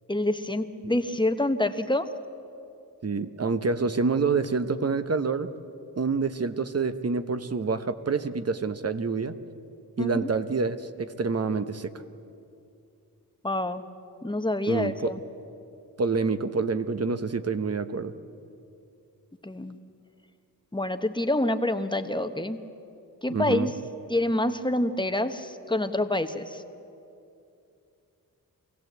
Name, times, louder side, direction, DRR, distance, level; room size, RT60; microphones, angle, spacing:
voice 1, 0.1-2.1 10.0-10.3 13.4-13.9 14.2-15.2 19.4-19.8 20.7-22.6 23.2-23.7 24.1-26.6, left 1 dB, 15° left, 8 dB, 1.0 m, -27 dB
voice 2, 3.0-5.5 6.0-9.3 10.0-11.9 14.7-15.1 16.0-18.1 23.3-23.7, right 4 dB, 40° right, 11 dB, 1.0 m, -27 dB
24.0 x 16.5 x 8.0 m, 2.7 s
cardioid pair, 75°, 37 cm